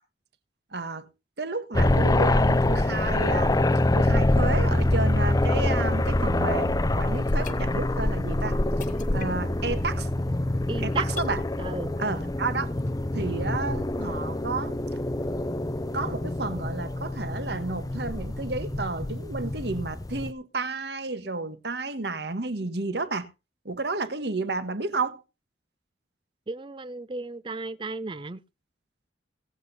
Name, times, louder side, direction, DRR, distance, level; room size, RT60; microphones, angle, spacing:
voice 1, 0.7-1.1 1.4-3.6 3.9-8.6 9.1-10.1 10.8-11.4 12.0-12.7 13.1-14.8 15.9-23.3 23.6-25.2, right 3 dB, 65° right, 1.4 m, -31 dB
sound 1, 1.7-20.3, left 1 dB, 20° left, 0.6 m, -25 dB
sound 2, 7.3-8.1 8.4-8.5 8.8-9.6 10.0-10.2 10.8-11.5 12.1-12.2, left 9 dB, 45° left, 1.3 m, -44 dB
voice 2, 10.7-11.1 11.6-12.0 26.5-28.4, right 3 dB, 25° right, 0.5 m, -35 dB
17.5 x 8.1 x 4.1 m
head